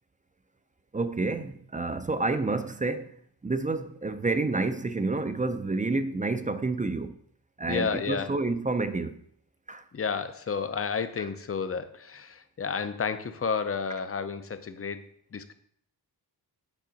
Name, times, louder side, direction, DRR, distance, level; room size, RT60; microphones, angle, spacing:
voice 1, 0.9-7.2 7.6-9.2 9.7-9.8 11.2-11.3, right 3 dB, 20° right, 0.4 m, -29 dB
voice 2, 7.7-8.3 9.9-15.0 15.3-15.5, left 5 dB, 35° left, 0.6 m, -31 dB
8.4 x 3.8 x 5.0 m
wide cardioid pair, 105°, 40 cm